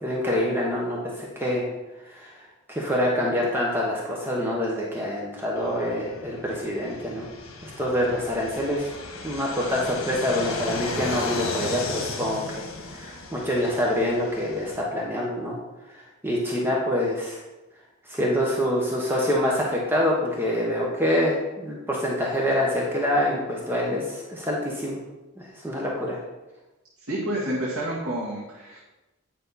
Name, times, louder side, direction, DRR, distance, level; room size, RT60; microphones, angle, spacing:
voice 1, 0.0-1.7 2.0-2.4 2.7-7.3 7.6-8.9 9.2-15.6 15.9-17.4 18.1-25.0 25.4-26.2, left 1 dB, 10° right, -3 dB, 1.1 m, -26 dB
Fixed-wing aircraft airplane, 5.6-14.8, left 3 dB, 90° left, 1.2 m, -35 dB
voice 2, 27.1-28.8, right 1 dB, 70° right, -6 dB, 1.7 m, -29 dB
9.3 x 5.4 x 4.1 m, 1.0 s
head